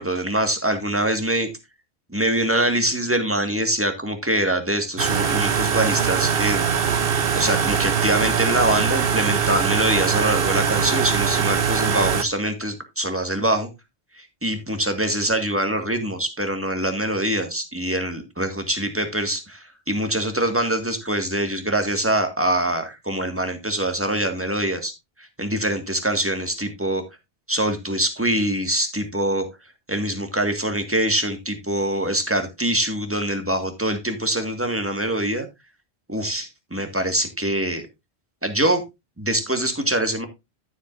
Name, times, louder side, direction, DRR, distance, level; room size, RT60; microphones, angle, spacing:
voice 1, 0.0-1.5 2.1-7.0 7.4-13.7 14.2-24.9 25.2-27.0 27.5-29.4 29.9-35.5 36.1-37.8 38.4-38.8 39.2-40.3, right 1 dB, 15° right, 6 dB, 1.9 m, -24 dB
sound 1, 5.0-12.2, right 7 dB, 65° right, 1.1 m, -22 dB
13.0 x 7.8 x 2.5 m, 0.22 s
omnidirectional pair, 1.0 m